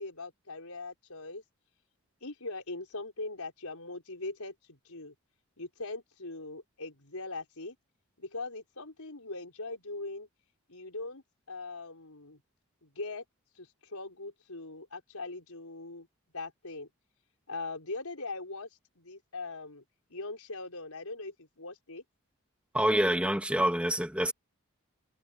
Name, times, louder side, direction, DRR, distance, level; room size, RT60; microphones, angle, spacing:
voice 1, 0.0-1.4 2.2-5.1 5.6-7.7 8.2-10.3 10.7-12.4 12.8-13.2 13.6-16.1 16.3-16.9 17.5-18.7 18.9-19.8 20.1-22.0, left 3 dB, 85° left, 5.1 m, -41 dB
voice 2, 22.7-24.3, right 1 dB, 5° right, 2.3 m, -26 dB
head